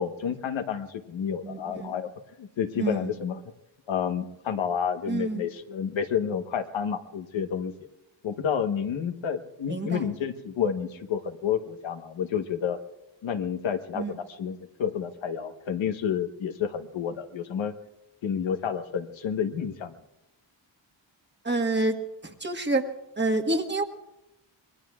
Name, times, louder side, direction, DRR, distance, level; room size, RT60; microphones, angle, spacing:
voice 1, 0.0-2.1 2.4-3.4 3.9-7.7 8.2-12.8 13.2-17.7 18.2-20.0, left 7 dB, 80° left, 7 dB, 1.2 m, -30 dB
voice 2, 1.4-1.9 2.8-3.1 5.1-5.5 9.7-10.0 13.9-14.1 21.4-22.0 22.4-22.8 23.2-23.8, right 2 dB, 25° right, 5 dB, 1.4 m, -27 dB
26.5 x 21.5 x 2.4 m, 0.91 s
wide cardioid pair, 110°, 46 cm